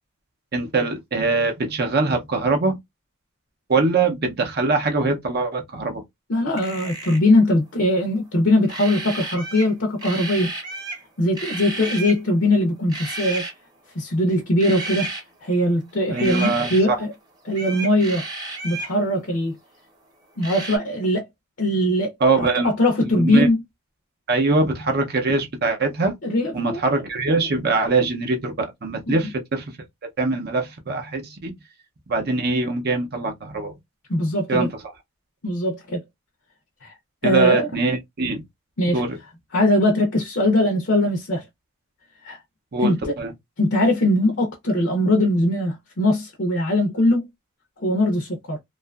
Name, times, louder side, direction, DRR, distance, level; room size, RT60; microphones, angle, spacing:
voice 1, 0.5-2.8 3.7-6.0 16.1-17.0 22.2-22.7 23.1-23.5 24.3-26.1 26.5-29.6 30.2-31.5 32.1-33.7 34.5-34.7 37.2-38.4 38.9-39.2 42.7-43.3, right 3 dB, 45° right, 0.6 m, -22 dB
voice 2, 6.3-10.5 11.2-13.5 14.0-15.1 15.4-17.1 17.4-18.2 18.6-19.5 20.4-21.3 21.6-22.1 22.4-23.6 26.2-26.8 29.1-29.3 34.1-34.7 35.4-36.0 36.8-36.9 37.2-37.7 38.8-39.0 39.5-41.4 42.2-42.4 42.8-43.1 43.6-47.3 47.8-48.6, left 1 dB, 55° left, 0.6 m, -21 dB
sound 1, 6.5-7.3 8.7-9.7 10.0-11.0 11.4-12.2 12.9-13.5 14.6-15.2 16.1-16.8 17.5-18.9 20.4-20.8, right 2 dB, 20° right, 0.8 m, -32 dB
2.7 x 2.4 x 2.3 m
head